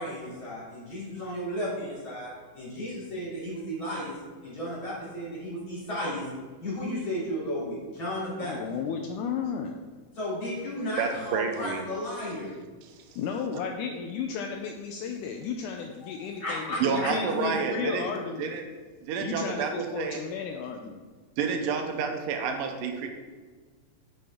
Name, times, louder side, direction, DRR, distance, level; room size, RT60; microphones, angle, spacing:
voice 1, 0.0-4.2 4.4-6.3 6.6-8.6 10.2-12.5 16.0-17.1, equal, 35° left, -8 dB, 3.5 m, -34 dB
voice 2, 8.4-9.8 13.2-18.5 19.2-21.0, left 6 dB, 80° left, 4 dB, 1.9 m, -33 dB
voice 3, 11.0-11.8 12.8-13.1 16.8-18.1 18.4-18.6 19.0-20.2 21.4-23.1, right 5 dB, 85° right, 4 dB, 2.4 m, -29 dB
9.1 x 6.8 x 3.6 m, 1.4 s
omnidirectional pair, 3.9 m